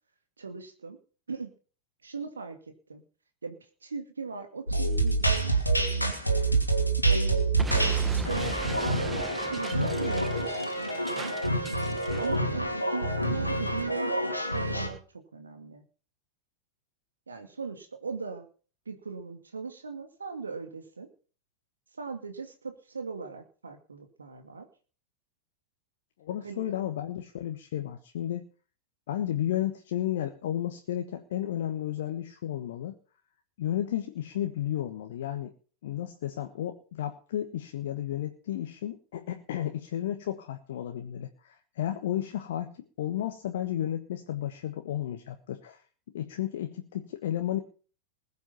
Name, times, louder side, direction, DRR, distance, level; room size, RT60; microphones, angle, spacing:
voice 1, 0.4-1.0 1.3-1.5 2.0-2.6 2.9-3.0 3.4-3.6 3.8-6.5 7.1-8.5 8.8-11.4 12.2-15.8 17.3-18.5 18.9-21.1 22.0-24.7 26.4-26.7, right 4 dB, 75° right, 7 dB, 2.4 m, -39 dB
sound 1, 4.7-14.9, right 2 dB, 85° left, 2.6 m, -27 dB
Explosion, 7.6-12.4, right 3 dB, 15° right, 1.3 m, -39 dB
voice 2, 26.2-28.5 29.1-32.9 33.6-35.5 35.8-45.8 46.1-47.6, left 11 dB, 55° left, 6 dB, 1.4 m, -33 dB
20.0 x 8.3 x 5.6 m, 0.39 s
figure-of-eight pair, 90°, 0 cm